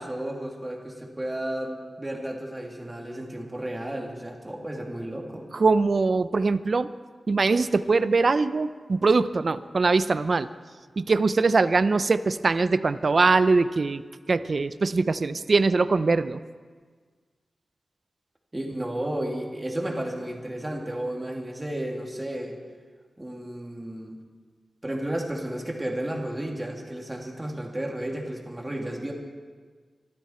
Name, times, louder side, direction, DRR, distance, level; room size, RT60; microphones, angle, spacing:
voice 1, 0.0-5.5 18.5-22.6 23.2-24.2 24.8-29.1, right 1 dB, 15° right, 0 dB, 2.4 m, -33 dB
voice 2, 5.5-6.9 7.3-10.5 11.0-14.0 14.3-16.4, right 3 dB, 50° right, 14 dB, 0.5 m, -22 dB
24.5 x 13.0 x 4.3 m, 1.5 s
wide cardioid pair, 135°, 0 cm